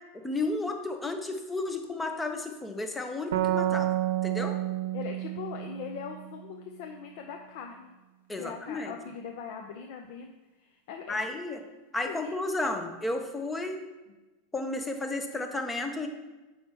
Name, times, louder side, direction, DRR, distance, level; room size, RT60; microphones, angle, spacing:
voice 1, 0.1-3.9 4.2-4.6 8.3-8.9 11.1-11.6 11.9-13.8 14.5-16.1, left 2 dB, 5° left, 5 dB, 0.6 m, -32 dB
sound 1, 3.3-6.8, right 14 dB, 85° right, 0.5 m, -30 dB
voice 2, 4.9-7.9 8.4-10.3 10.6-11.2 12.0-12.3, left 7 dB, 50° left, 3 dB, 0.6 m, -41 dB
7.8 x 5.6 x 4.5 m, 1.1 s
supercardioid pair, 175°, 0 cm